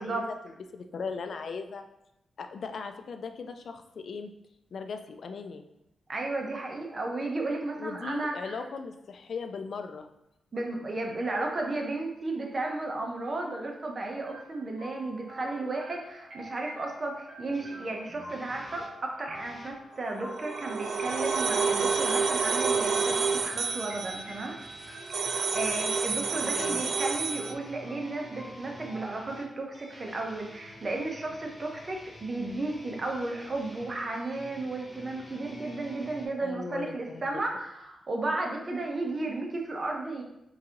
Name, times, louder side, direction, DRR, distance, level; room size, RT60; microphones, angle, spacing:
voice 1, 0.0-1.8 2.4-4.3 4.7-5.6 7.8-10.1 26.4-26.9 36.4-37.2, left 5 dB, 65° left, 7 dB, 0.4 m, -38 dB
voice 2, 6.1-8.6 10.5-24.5 25.2-40.2, right 2 dB, 40° right, 1 dB, 0.9 m, -34 dB
sound 1, 14.2-30.0, right 1 dB, 80° right, 1.5 m, -48 dB
sound 2, 17.5-19.8 20.8-36.3, equal, 10° right, 1.0 m, -50 dB
sound 3, 20.1-27.5, right 5 dB, 65° right, 0.4 m, -29 dB
3.9 x 2.8 x 3.7 m, 0.83 s
cardioid pair, 80°, 0 cm